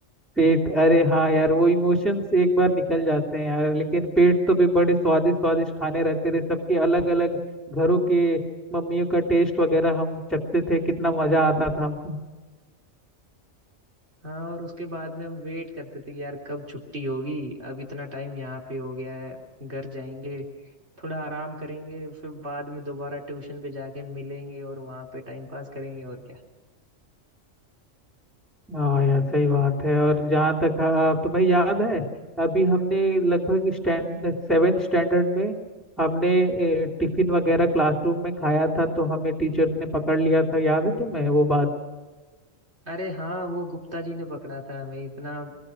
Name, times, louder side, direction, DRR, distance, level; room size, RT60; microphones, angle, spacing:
voice 1, 0.4-7.4 7.7-8.4 8.7-10.2 10.5-12.2 28.7-32.0 32.4-35.5 36.0-41.7, right 1 dB, ahead, 3 dB, 3.0 m, -22 dB
voice 2, 14.2-20.5 21.0-26.4 42.9-45.6, equal, 55° right, 1 dB, 3.7 m, -35 dB
25.0 x 21.5 x 6.5 m, 1.3 s
omnidirectional pair, 1.4 m